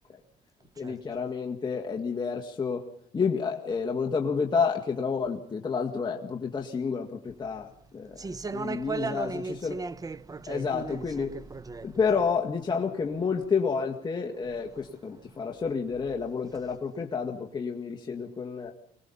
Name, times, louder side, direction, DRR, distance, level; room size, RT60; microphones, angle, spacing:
voice 1, 0.8-2.9 3.1-8.3 8.5-9.3 9.6-9.8 10.5-11.3 11.8-18.7, left 5 dB, 25° left, 1.9 m, -30 dB
voice 2, 8.1-12.0 15.3-15.4, right 4 dB, 20° right, 0.9 m, -36 dB
25.0 x 19.5 x 5.6 m
cardioid pair, 110°, 17 cm